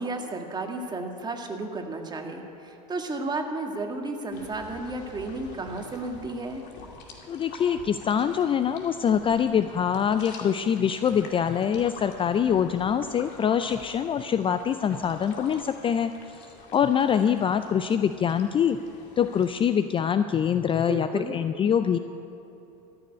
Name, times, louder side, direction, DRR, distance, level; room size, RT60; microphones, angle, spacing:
voice 1, 0.0-6.6 20.8-21.3, right 2 dB, 20° right, 3 dB, 1.8 m, -33 dB
sound 1, 4.3-19.6, left 3 dB, 55° left, 2.4 m, -46 dB
voice 2, 7.3-16.1 16.4-16.5 16.7-18.8 19.2-22.0, left 8 dB, 25° left, 10 dB, 0.4 m, -24 dB
14.0 x 7.0 x 9.5 m, 2.9 s
hypercardioid pair, 90°, 21 cm